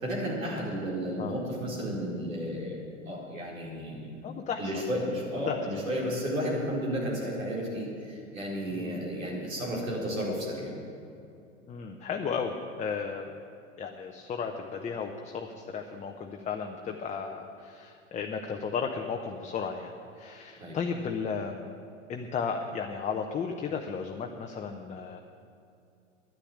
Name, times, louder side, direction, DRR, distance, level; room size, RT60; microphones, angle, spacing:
voice 1, 0.0-2.8 3.1-4.1 4.6-10.7 20.6-20.8, equal, 90° right, -3 dB, 4.2 m, -32 dB
voice 2, 4.2-4.7 5.5-5.6 8.7-9.0 11.7-13.3 13.8-19.9 20.2-21.7 22.1-25.2, left 6 dB, 20° left, 3 dB, 0.8 m, -34 dB
10.5 x 9.8 x 8.7 m, 2.6 s
hypercardioid pair, 100°, 39 cm